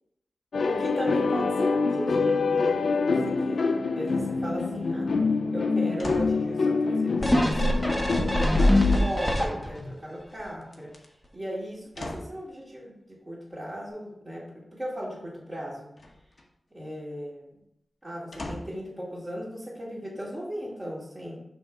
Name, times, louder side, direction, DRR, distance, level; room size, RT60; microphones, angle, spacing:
sound 1, 0.5-9.1, left 4 dB, 80° left, 0.5 m, -26 dB
voice 1, 0.7-5.1 5.5-10.9 11.3-15.9 16.7-17.6 18.0-21.4, equal, 25° right, -10 dB, 2.1 m, -37 dB
sound 2, 6.0-6.4 8.9-9.7 10.6-11.1 11.9-12.4 16.0-16.5 18.3-18.9 19.5-19.6, left 1 dB, 50° left, 0.9 m, -39 dB
sound 3, 7.2-9.9 10.4-10.5, left 1 dB, 5° left, 1.0 m, -23 dB
6.1 x 3.6 x 5.2 m, 0.77 s
wide cardioid pair, 105°, 0 cm